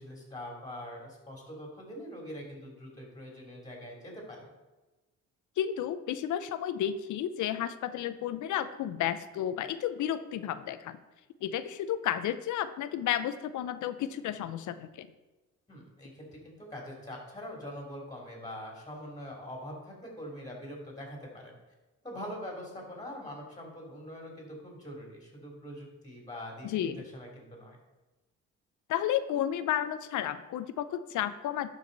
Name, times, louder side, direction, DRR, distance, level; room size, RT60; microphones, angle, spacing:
voice 1, 0.0-4.5 15.7-21.5 22.0-27.8, equal, 15° left, -1 dB, 3.0 m, -43 dB
voice 2, 5.6-11.0 11.4-15.1 26.6-27.0 28.9-31.7, left 10 dB, 75° left, 13 dB, 0.6 m, -32 dB
12.0 x 5.0 x 4.0 m, 1.1 s
cardioid pair, 90°, 30 cm